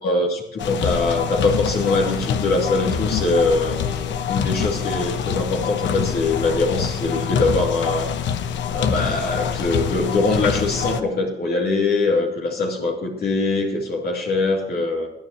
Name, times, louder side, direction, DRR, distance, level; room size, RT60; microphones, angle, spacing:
voice 1, 0.0-8.1 8.7-15.1, left 3 dB, 55° left, -1 dB, 2.8 m, -22 dB
sound 1, 0.6-11.0, left 7 dB, 75° left, 1.0 m, -25 dB
19.5 x 9.9 x 3.0 m, 0.83 s
cardioid pair, 90°, 19 cm